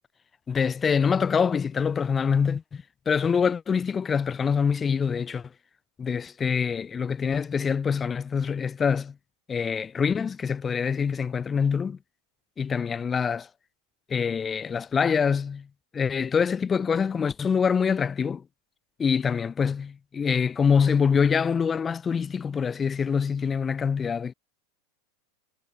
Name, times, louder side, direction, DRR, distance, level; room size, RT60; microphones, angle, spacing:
voice 1, 0.5-5.5 6.0-9.1 9.5-12.0 12.6-13.5 14.1-15.7 15.9-18.4 19.0-24.3, left 6 dB, 20° left, 7.8 m, -25 dB
supercardioid pair, 120°, 0 cm